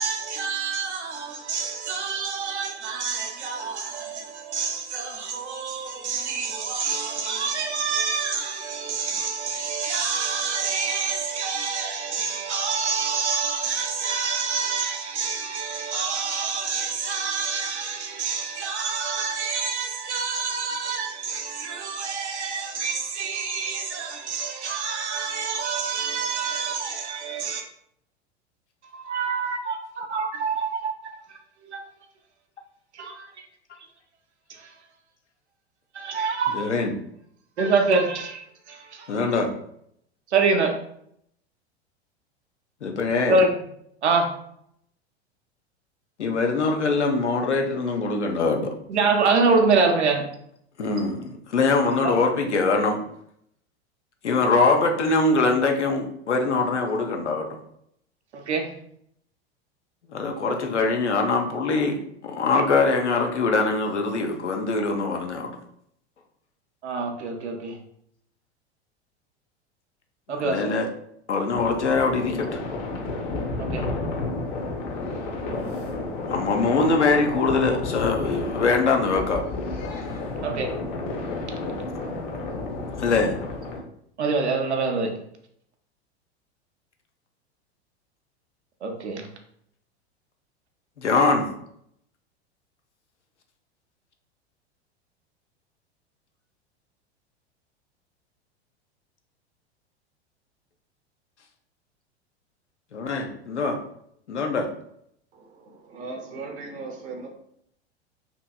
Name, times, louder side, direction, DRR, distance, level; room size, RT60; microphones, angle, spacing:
voice 1, 0.0-27.6 28.8-31.8 32.9-33.4 34.5-34.8 35.9-36.6 37.6-39.2 40.3-40.7 43.2-43.6 44.0-44.3 48.9-50.2 52.0-52.1 58.3-58.7 66.8-67.8 70.3-70.8 73.6-73.9 80.4-80.7 84.2-85.1 88.8-89.3, right 4 dB, 80° right, 0.6 m, -26 dB
voice 2, 36.6-36.9 39.1-39.5 42.8-43.4 46.2-48.8 50.8-53.0 54.2-57.5 60.1-62.0 62.2-65.5 70.4-70.9 71.3-72.6 76.3-79.4 83.0-83.4 91.0-91.5 102.9-103.8 104.3-104.7, left 3 dB, 85° left, 0.5 m, -23 dB
sound 1, 71.5-83.8, left 3 dB, 45° left, 0.6 m, -31 dB
voice 3, 105.9-107.3, right 3 dB, 25° right, 0.5 m, -36 dB
2.8 x 2.6 x 2.2 m
figure-of-eight pair, 90°, 34 cm